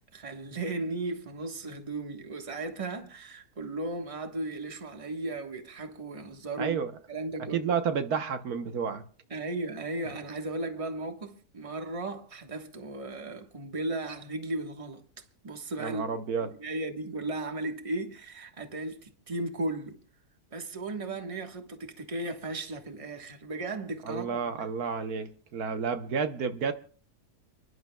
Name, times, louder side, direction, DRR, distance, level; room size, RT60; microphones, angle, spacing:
voice 1, 0.1-6.8 7.1-7.7 9.3-15.0 15.4-16.1 16.4-20.0 20.5-24.7, right 2 dB, 25° right, 1.3 m, -36 dB
voice 2, 6.6-6.9 7.5-9.0 15.8-16.5 24.0-26.7, right 6 dB, 80° right, 1.5 m, -30 dB
30.0 x 11.0 x 2.3 m
omnidirectional pair, 1.6 m